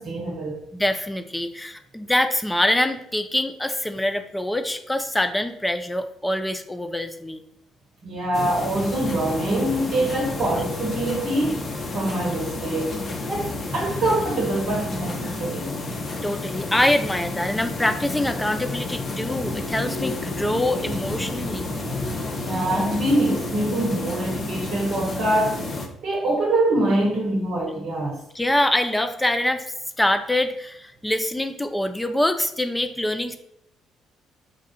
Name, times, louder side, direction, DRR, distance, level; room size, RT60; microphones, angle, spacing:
voice 1, 0.0-0.6 8.0-13.0 13.3-15.8 22.4-25.6 26.0-28.2, right 1 dB, 55° right, -2 dB, 0.8 m, -24 dB
voice 2, 0.7-7.4 16.2-21.7 28.3-29.6 30.0-33.4, left 1 dB, 10° left, 7 dB, 0.5 m, -24 dB
sound 1, 8.3-25.9, left 2 dB, 40° left, 0.8 m, -30 dB
4.5 x 2.4 x 4.2 m, 0.78 s
figure-of-eight pair, 45°, 0 cm